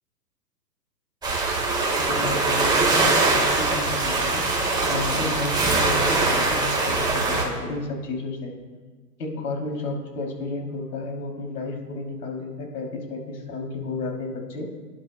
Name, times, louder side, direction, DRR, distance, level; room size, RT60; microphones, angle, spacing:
sound 1, 1.2-7.4, right 3 dB, 10° right, 1.5 m, -22 dB
voice 1, 2.0-4.5 4.9-8.5 9.2-14.7, left 2 dB, 70° left, 0 dB, 3.2 m, -32 dB
22.5 x 11.0 x 2.3 m, 1.4 s
hypercardioid pair, 130°, 49 cm